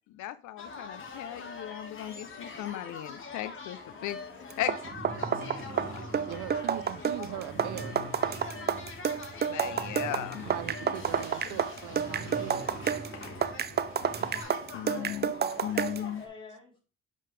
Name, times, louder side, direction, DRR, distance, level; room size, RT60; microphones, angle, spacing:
voice 1, 0.1-4.2 4.6-4.8 5.4-6.0 9.5-10.5 11.1-11.6 14.7-16.2, left 13 dB, 75° left, 0.5 m, -37 dB
sound 1, 0.6-16.3, left 4 dB, 40° left, 1.7 m, -44 dB
sound 2, 4.5-16.1, right 7 dB, 35° right, 0.5 m, -30 dB
sound 3, 4.6-14.4, right 2 dB, 65° right, 1.8 m, -44 dB
voice 2, 5.9-8.0 10.5-13.1, right 13 dB, 85° right, 0.6 m, -41 dB
voice 3, 14.9-15.8 16.1-16.8, left 4 dB, 15° left, 3.2 m, -52 dB
7.5 x 5.3 x 3.3 m
cardioid pair, 90°, 30 cm